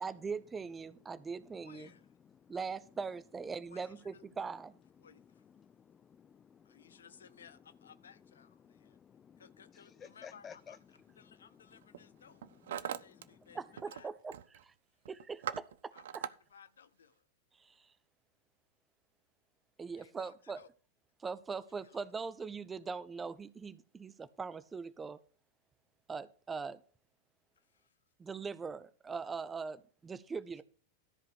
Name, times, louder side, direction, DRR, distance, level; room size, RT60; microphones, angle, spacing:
voice 1, 0.0-1.9 2.5-4.7 13.5-14.7 15.1-16.2 17.5-17.9 19.8-20.6 21.2-25.2 26.1-26.8 28.2-30.6, right 5 dB, 15° right, 0.8 m, -41 dB
voice 2, 1.6-2.0 3.7-3.9 5.0-5.4 6.6-9.0 9.4-12.4 12.7-13.6 13.9-14.1 15.9-17.3 19.9-20.7 21.8-22.0 27.6-28.0, left 7 dB, 70° left, 0.7 m, -59 dB
voice 3, 5.6-7.0 8.6-9.4 9.7-10.8 11.3-11.4, left 7 dB, 20° left, 0.4 m, -55 dB
Hammer, 10.7-11.0 11.7-12.0 12.3-13.3 13.5-14.0 14.3-14.6 15.1-16.3, right 10 dB, 60° right, 0.5 m, -41 dB
13.5 x 5.0 x 6.3 m
figure-of-eight pair, 90°, 0 cm